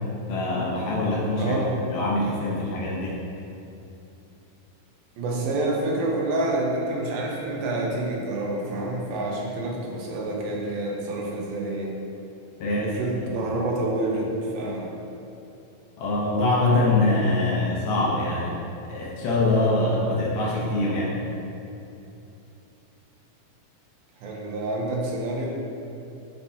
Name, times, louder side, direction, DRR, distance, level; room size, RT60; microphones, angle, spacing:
voice 1, 0.3-1.5 1.9-3.2 12.6-12.9 16.0-18.6 18.9-21.2, left 2 dB, 70° left, -5 dB, 2.2 m, -24 dB
voice 2, 1.4-1.7 5.2-12.0 12.7-14.9 24.2-25.5, right 2 dB, 80° right, -1 dB, 2.6 m, -28 dB
9.0 x 4.5 x 2.8 m, 2.8 s
omnidirectional pair, 4.2 m